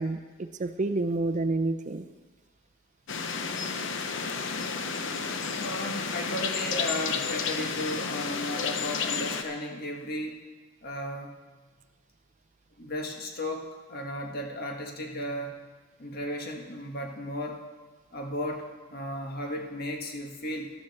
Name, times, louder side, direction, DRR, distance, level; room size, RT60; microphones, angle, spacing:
voice 1, 0.0-2.0, right 2 dB, 40° right, 8 dB, 0.5 m, -29 dB
sound 1, 3.1-9.4, left 5 dB, 65° left, 0.9 m, -31 dB
voice 2, 5.5-10.4 10.8-11.3 12.8-15.7 16.0-17.6 18.1-20.7, left 1 dB, 50° left, 2 dB, 1.6 m, -35 dB
13.5 x 12.5 x 4.2 m, 1.3 s
head